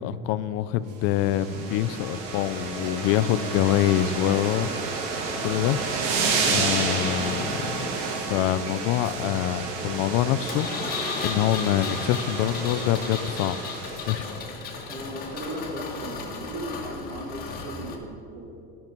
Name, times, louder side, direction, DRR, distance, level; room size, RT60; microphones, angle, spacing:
voice 1, 0.0-4.7 5.4-5.8 6.4-7.9 8.3-10.7 10.9-13.6 14.1-14.3, left 12 dB, 55° left, 15 dB, 0.4 m, -25 dB
sound 1, 1.1-14.3, right 4 dB, 65° right, 1.5 m, -30 dB
Engine, 10.5-18.0, left 5 dB, 30° left, 1.4 m, -35 dB
voice 2, 14.9-18.6, right 1 dB, 35° right, 1 dB, 1.7 m, -37 dB
13.5 x 6.0 x 5.4 m, 2.7 s
cardioid pair, 155°, 30 cm